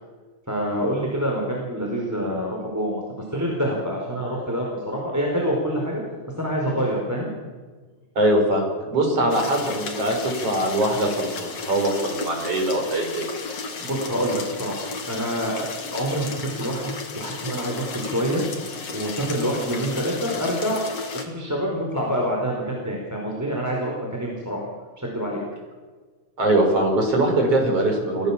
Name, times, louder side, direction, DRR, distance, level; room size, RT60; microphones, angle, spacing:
voice 1, 0.5-6.0 6.4-7.3 13.8-18.4 18.9-20.8 21.1-24.7 25.0-25.4, equal, 5° right, -2 dB, 4.6 m, -26 dB
voice 2, 8.2-13.3 26.4-28.3, right 1 dB, 50° right, 2 dB, 6.7 m, -22 dB
sound 1, 9.3-21.2, left 4 dB, 55° left, 3.5 m, -34 dB
28.5 x 17.0 x 7.5 m, 1.4 s
omnidirectional pair, 3.3 m